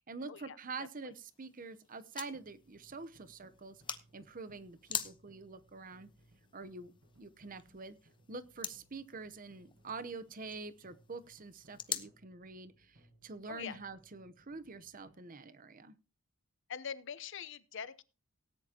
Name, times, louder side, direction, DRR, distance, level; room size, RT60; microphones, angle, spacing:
voice 1, 0.0-3.8 4.1-6.1 6.5-8.0 8.3-13.0 13.2-15.9, right 3 dB, 40° right, 13 dB, 0.8 m, -46 dB
sound 1, 1.1-12.1, left 7 dB, 20° left, 0.9 m, -46 dB
sound 2, 2.3-15.1, equal, 65° right, 4.9 m, -66 dB
voice 2, 16.7-18.0, left 7 dB, 60° left, 16 dB, 0.8 m, -43 dB
18.0 x 10.0 x 2.9 m, 0.32 s
head